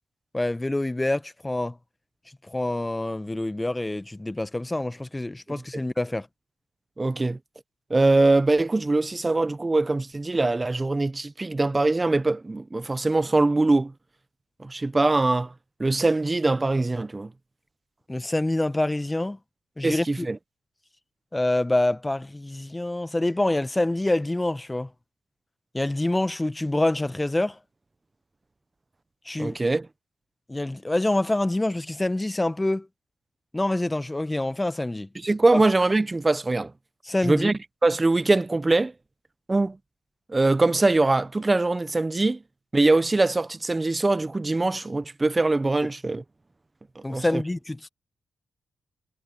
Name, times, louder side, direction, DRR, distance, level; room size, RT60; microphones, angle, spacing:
voice 1, 0.3-1.8 2.5-6.3 18.1-19.4 19.8-20.3 21.3-24.9 25.7-27.6 29.2-29.6 30.5-32.9 33.5-35.1 35.5-35.6 37.1-37.5 47.0-47.8, left 1 dB, 20° left, 1.3 m, -26 dB
voice 2, 7.0-7.4 7.9-13.9 14.6-15.5 15.8-17.3 19.8-20.4 29.4-29.9 35.1-36.7 37.2-38.9 39.5-39.8 40.3-42.4 42.7-46.2 47.1-47.4, right 2 dB, 25° right, 1.1 m, -22 dB
hypercardioid pair, 45°, 0 cm